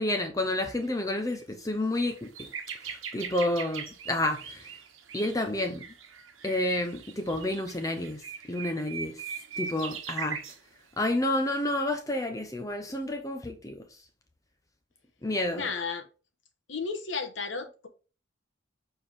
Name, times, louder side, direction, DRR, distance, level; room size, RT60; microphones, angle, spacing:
voice 1, 0.0-2.5 3.1-4.8 5.1-5.8 6.4-8.2 8.5-9.1 9.6-10.4 11.0-13.8 15.2-15.7, left 1 dB, 15° left, 0.7 m, -30 dB
sound 1, 0.7-0.9 1.3-1.4 1.7-10.6 11.4-11.5, right 6 dB, 85° right, 1.1 m, -41 dB
voice 2, 15.5-16.1 16.7-17.9, left 5 dB, 70° left, 1.3 m, -33 dB
7.1 x 4.5 x 3.6 m
head